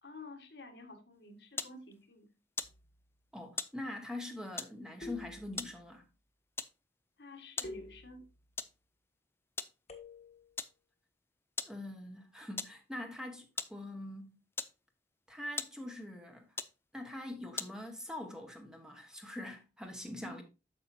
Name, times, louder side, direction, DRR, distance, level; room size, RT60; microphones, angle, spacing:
voice 1, 0.0-2.3 7.2-8.3 20.2-20.4, left 2 dB, 70° left, 1.7 m, -51 dB
sound 1, 1.1-18.1, left 4 dB, 15° left, 0.4 m, -46 dB
sound 2, 2.6-3.2 5.0-5.9 7.6-8.6 9.9-10.6, left 2 dB, 40° left, 1.4 m, -49 dB
voice 2, 3.3-6.0 11.6-14.4 15.3-16.5 16.9-20.4, left 1 dB, 5° right, 1.3 m, -43 dB
8.7 x 6.7 x 2.7 m
head